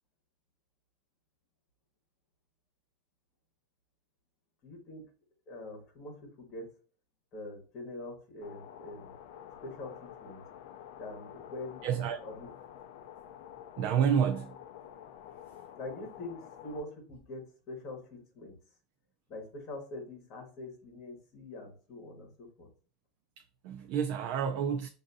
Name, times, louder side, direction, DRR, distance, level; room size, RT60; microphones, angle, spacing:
voice 1, 4.6-5.0 5.5-6.7 7.3-9.1 9.6-10.4 11.0-11.8 12.2-12.5 15.7-18.5 19.3-22.7, left 2 dB, 35° left, 1.4 m, -44 dB
sound 1, 8.4-16.8, left 10 dB, 60° left, 0.4 m, -49 dB
voice 2, 11.8-12.3 13.8-14.6 23.4-24.9, right 8 dB, 50° right, 0.4 m, -30 dB
6.2 x 2.6 x 2.6 m
supercardioid pair, 170°, 0 cm